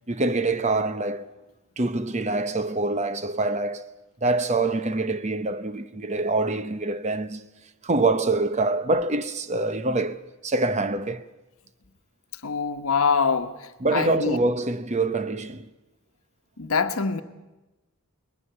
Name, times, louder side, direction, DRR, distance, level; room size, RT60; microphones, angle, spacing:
voice 1, 0.1-1.3 1.8-3.9 4.2-7.5 7.8-11.3 13.8-15.7, right 2 dB, 30° right, 0.8 m, -25 dB
voice 2, 12.4-14.4 16.6-17.2, left 5 dB, 75° left, 1.1 m, -24 dB
22.5 x 19.5 x 6.8 m
head